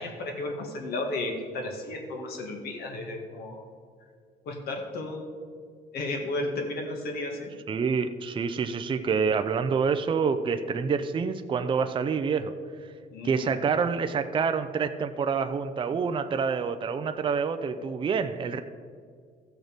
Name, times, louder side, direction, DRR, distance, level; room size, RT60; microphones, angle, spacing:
voice 1, 0.0-3.6 4.5-5.4 5.9-7.5 13.1-13.6, left 2 dB, 65° left, 2 dB, 1.9 m, -33 dB
voice 2, 7.7-12.5 13.2-18.6, right 5 dB, 30° right, 8 dB, 0.5 m, -27 dB
14.5 x 6.3 x 5.1 m, 2.1 s
cardioid pair, 110°, 17 cm